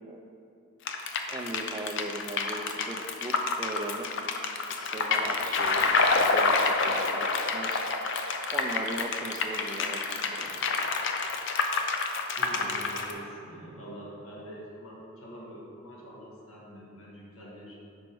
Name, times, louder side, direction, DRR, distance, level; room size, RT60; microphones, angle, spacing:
water clickums, 0.9-13.1, left 4 dB, 55° left, 0.5 m, -28 dB
voice 1, 1.3-4.1 4.8-7.3 7.5-7.8 8.5-10.5, right 2 dB, 20° right, 4 dB, 0.4 m, -38 dB
voice 2, 12.3-17.8, right 1 dB, 75° left, -5 dB, 1.6 m, -44 dB
6.2 x 5.1 x 4.6 m, 2.7 s
head